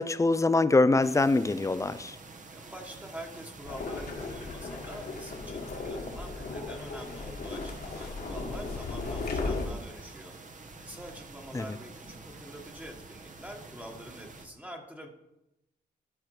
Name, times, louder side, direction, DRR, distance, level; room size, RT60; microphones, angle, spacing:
voice 1, 0.0-2.2 11.5-11.7, left 3 dB, 20° left, 0.5 m, -24 dB
sound 1, 1.0-14.5, right 3 dB, 50° right, 1.2 m, -48 dB
voice 2, 2.5-10.3 10.8-15.1, equal, 10° right, 1.4 m, -46 dB
sound 2, 3.7-9.7, left 3 dB, 65° left, 1.8 m, -36 dB
12.0 x 5.0 x 4.8 m
cardioid pair, 80°, 17 cm